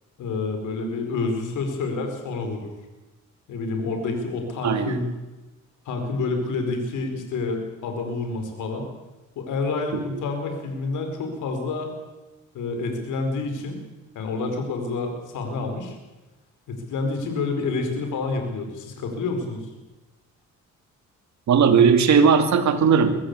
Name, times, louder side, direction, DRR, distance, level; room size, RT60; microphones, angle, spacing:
voice 1, 0.2-2.7 3.5-5.1 5.8-8.9 9.3-11.9 12.5-13.8 14.1-16.0 16.7-19.6, left 3 dB, 80° left, 5 dB, 4.9 m, -28 dB
voice 2, 4.6-5.0 9.9-10.0 21.5-23.2, right 6 dB, 65° right, 9 dB, 2.7 m, -17 dB
23.0 x 14.5 x 8.5 m, 1.1 s
cardioid pair, 90°, 30 cm